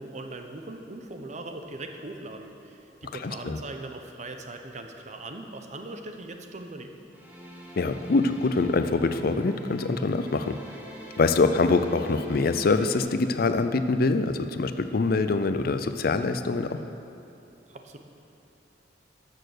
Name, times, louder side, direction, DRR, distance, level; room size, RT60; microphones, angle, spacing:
voice 1, 0.0-7.0 17.7-18.0, right 2 dB, 40° right, 5 dB, 0.8 m, -40 dB
voice 2, 3.2-3.6 7.8-10.6 11.2-16.8, left 3 dB, 55° left, 10 dB, 0.5 m, -24 dB
sound 1, 7.1-13.0, right 1 dB, 10° right, 1.4 m, -43 dB
12.5 x 6.7 x 6.7 m, 2.7 s
head